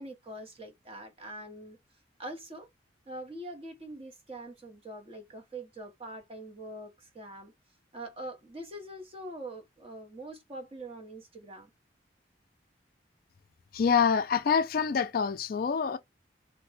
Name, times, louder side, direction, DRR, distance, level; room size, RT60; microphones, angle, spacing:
voice 1, 0.0-1.8 2.2-2.7 3.1-7.5 7.9-11.7, right 1 dB, 30° right, 0.9 m, -43 dB
voice 2, 13.7-16.0, left 6 dB, 50° left, 0.3 m, -26 dB
3.1 x 2.1 x 3.2 m
head